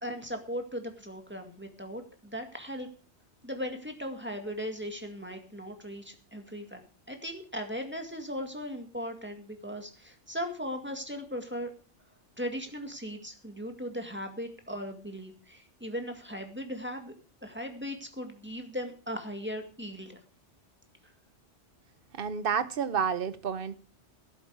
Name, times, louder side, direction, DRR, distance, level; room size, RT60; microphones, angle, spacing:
voice 1, 0.0-2.9 3.4-6.8 7.1-11.7 12.4-17.1 17.4-20.2, equal, 10° right, 2.0 m, -38 dB
voice 2, 22.1-23.7, right 7 dB, 55° right, 1.1 m, -30 dB
13.0 x 12.0 x 4.8 m
omnidirectional pair, 1.2 m